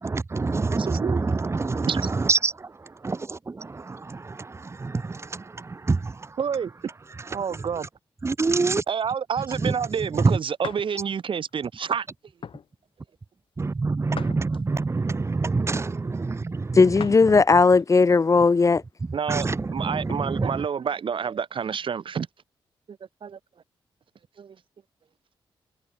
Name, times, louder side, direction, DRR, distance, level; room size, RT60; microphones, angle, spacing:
voice 1, 0.0-6.4 8.2-8.8 9.6-9.7 10.2-10.4 13.6-17.1 19.3-20.6, right 3 dB, 30° right, 0.8 m, -26 dB
voice 2, 0.8-1.2 1.9-2.1 6.4-6.7 7.3-7.9 8.9-12.1 19.1-19.5 19.7-22.3 22.9-23.4 24.4-24.6, right 7 dB, 60° right, 1.4 m, -28 dB
sound 1, 10.6-10.9 11.5-11.7 12.4-12.7 14.1-14.9 17.0-17.3 17.8-17.9 19.6-20.3, left 7 dB, 65° left, 2.8 m, -39 dB
voice 3, 16.7-18.8, left 4 dB, 35° left, 0.5 m, -17 dB
cardioid pair, 65°, 10 cm